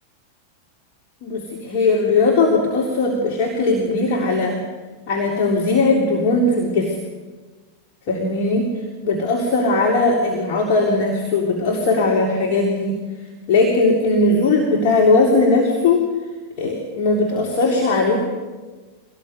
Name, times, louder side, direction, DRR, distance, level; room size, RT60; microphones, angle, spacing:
voice 1, 1.2-4.6 5.1-7.0 8.1-8.7 9.0-13.0 13.5-16.1 16.6-18.2, left 3 dB, 45° left, 0 dB, 3.5 m, -18 dB
24.5 x 18.0 x 8.0 m, 1.4 s
figure-of-eight pair, 90°, 0 cm